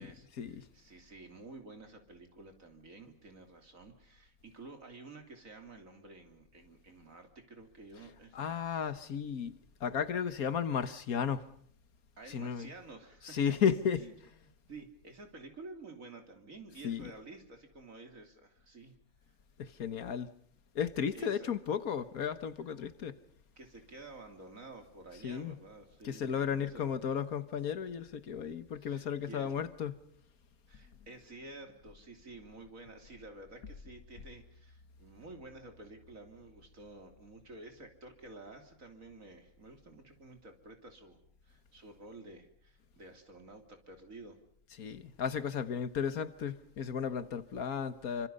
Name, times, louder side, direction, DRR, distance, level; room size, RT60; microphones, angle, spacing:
voice 1, 0.0-8.7 12.2-13.4 14.0-18.9 21.1-21.5 23.6-27.0 28.8-29.5 30.7-41.2 41.4-44.4, right 2 dB, 65° right, 3.5 m, -51 dB
voice 2, 8.3-9.5 9.8-11.5 12.3-12.7 13.2-14.0 16.8-17.1 19.6-20.3 20.7-23.2 25.2-25.6 26.0-30.0 44.8-48.3, left 7 dB, 80° left, 1.7 m, -34 dB
28.0 x 25.5 x 5.5 m
omnidirectional pair, 1.5 m